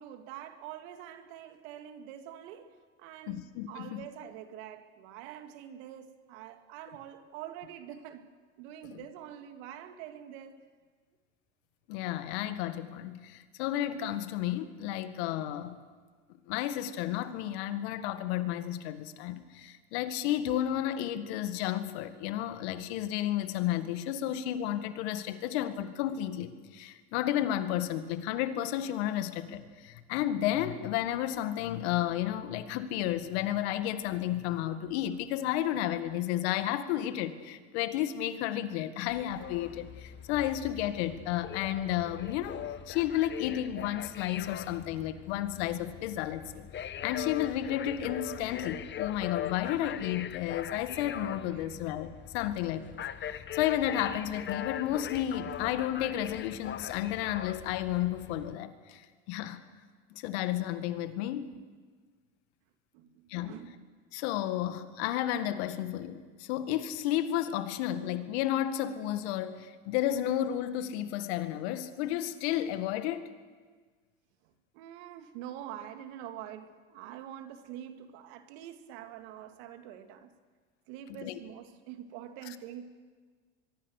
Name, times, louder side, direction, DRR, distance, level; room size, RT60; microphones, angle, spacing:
voice 1, 0.0-10.6 51.6-51.8 62.9-63.7 74.7-80.3 80.9-82.9, right 10 dB, 70° right, 2.4 m, -45 dB
voice 2, 3.3-4.0 8.9-9.0 11.9-15.8 16.5-52.8 53.2-59.6 60.1-61.6 63.3-63.6 64.1-73.3 81.2-81.4, left 12 dB, 70° left, 1.8 m, -32 dB
sound 1, 39.1-58.5, left 10 dB, 35° left, 1.1 m, -41 dB
23.5 x 23.0 x 6.6 m
hypercardioid pair, 90°, 33 cm